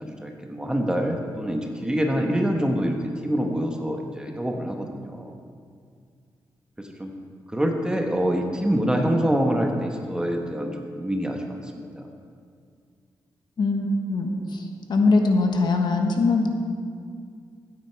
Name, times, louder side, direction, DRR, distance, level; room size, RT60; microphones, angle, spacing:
voice 1, 0.0-5.3 6.8-7.1 7.5-12.1, equal, 10° right, 2 dB, 1.2 m, -26 dB
voice 2, 13.6-16.5, left 3 dB, 65° left, 3 dB, 1.3 m, -22 dB
15.0 x 9.5 x 4.6 m, 2.2 s
wide cardioid pair, 125°, 8 cm